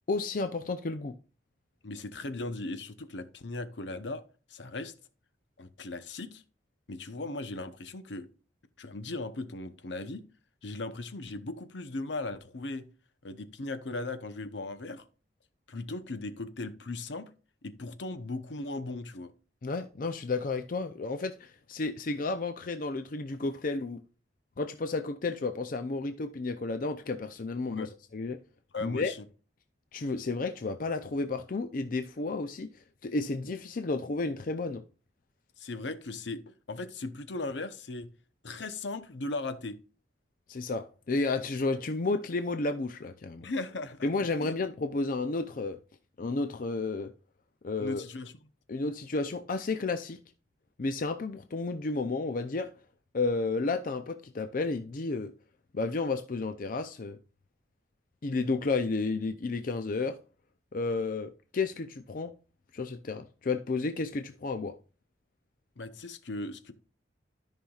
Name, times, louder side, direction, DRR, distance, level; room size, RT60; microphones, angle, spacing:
voice 1, 0.1-1.2 19.6-24.0 24.6-28.4 28.8-29.1 29.9-32.7 33.0-34.8 40.5-43.5 44.0-45.8 46.2-47.1 47.6-48.0 48.7-50.2 50.8-52.7 53.1-55.3 55.7-57.2 58.2-60.2 60.7-62.3 62.7-64.7, left 3 dB, 50° left, 0.5 m, -32 dB
voice 2, 1.8-4.2 4.5-4.9 5.6-6.4 6.9-8.3 8.8-10.2 10.6-12.9 13.2-15.0 15.7-17.3 17.6-19.3 27.7-27.9 28.7-29.2 35.6-38.1 38.4-39.8 43.4-44.1 44.4-44.5 47.8-48.3 65.8-66.7, left 2 dB, 75° left, 0.8 m, -38 dB
13.5 x 5.6 x 2.4 m
head